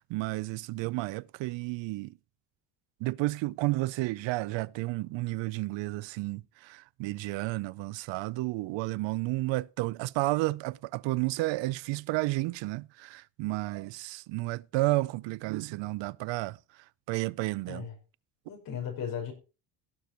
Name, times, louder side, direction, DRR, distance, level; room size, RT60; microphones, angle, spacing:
voice 1, 0.0-2.1 3.0-16.6 17.1-17.9, right 20 dB, 80° right, 0.5 m, -31 dB
voice 2, 18.5-19.3, left 8 dB, 50° left, 5.4 m, -36 dB
17.0 x 6.7 x 4.4 m
cardioid pair, 180°, 44 cm